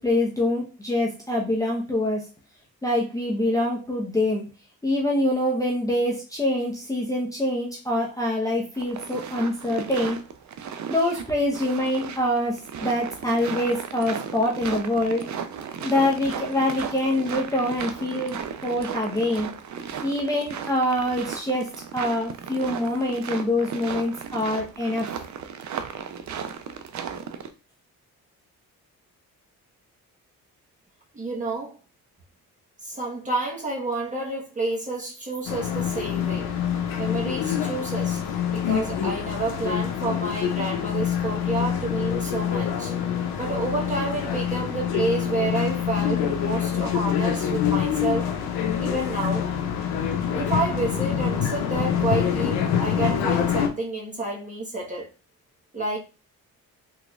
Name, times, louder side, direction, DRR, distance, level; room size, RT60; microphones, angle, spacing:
voice 1, 0.0-2.3 2.8-4.4 4.8-10.2 10.9-15.3 15.8-19.5 20.0-25.1, left 1 dB, 10° left, 0.9 m, -25 dB
sound 1, 8.8-27.5, right 7 dB, 50° right, 0.6 m, -35 dB
voice 2, 31.1-31.8 32.8-36.5 37.0-38.2 38.5-42.9 43.4-48.3 48.8-49.5 50.3-55.1 55.7-56.0, right 2 dB, 20° right, 1.3 m, -29 dB
sound 2, 35.5-53.7, left 9 dB, 90° left, 0.6 m, -26 dB
3.7 x 3.0 x 2.4 m
cardioid pair, 75°, 36 cm